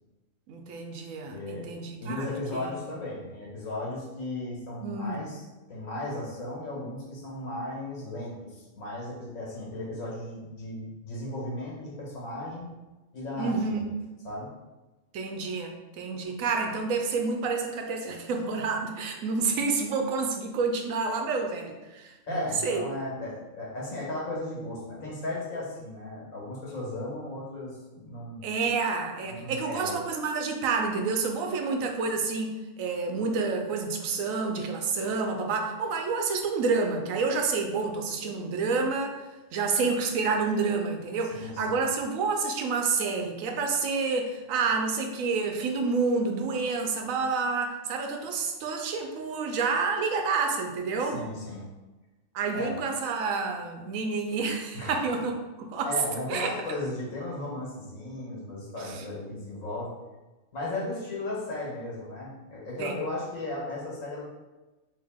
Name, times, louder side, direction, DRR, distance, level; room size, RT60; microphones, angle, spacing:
voice 1, 0.5-2.3 2.5-2.7 4.8-5.2 13.4-13.9 15.1-22.9 28.4-39.2 39.5-51.2 52.3-55.9 56.3-56.5 58.8-59.0 62.8-63.0, right 4 dB, 90° right, 4 dB, 1.0 m, -29 dB
voice 2, 1.3-1.7 2.0-5.4 5.7-12.7 13.1-13.8 14.2-14.5 22.3-28.4 29.2-30.0 41.3-41.7 51.0-51.7 52.5-52.7 54.7-55.1 55.8-59.9 60.5-64.2, left 2 dB, 85° left, -4 dB, 1.5 m, -35 dB
3.4 x 2.8 x 3.5 m, 1.1 s
omnidirectional pair, 1.4 m